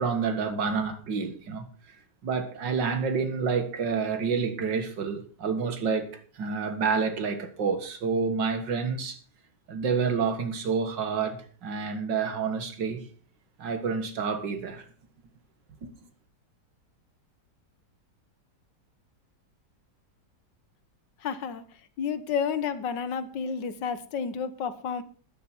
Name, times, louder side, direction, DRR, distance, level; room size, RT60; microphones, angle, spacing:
voice 1, 0.0-1.7 2.2-9.2 9.7-13.0 13.6-14.9 15.8-15.9, right 5 dB, 85° right, 2.3 m, -28 dB
voice 2, 21.2-21.6 22.0-25.0, left 6 dB, 85° left, 1.8 m, -30 dB
13.5 x 10.5 x 4.5 m
omnidirectional pair, 1.9 m